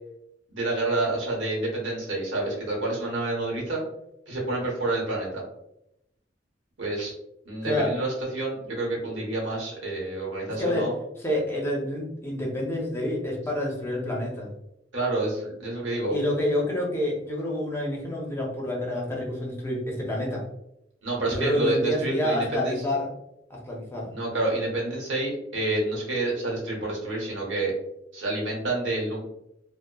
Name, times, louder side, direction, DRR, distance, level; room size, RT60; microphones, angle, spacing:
voice 1, 0.5-3.8 4.3-5.4 6.8-7.1 7.4-10.9 14.9-16.2 21.0-22.8 24.1-27.7 28.1-29.2, right 2 dB, 85° right, -4 dB, 1.0 m, -28 dB
voice 2, 11.2-14.5 16.1-20.4 21.3-23.1 23.5-24.1, left 1 dB, 15° left, -2 dB, 0.6 m, -28 dB
2.8 x 2.0 x 2.2 m, 0.83 s
head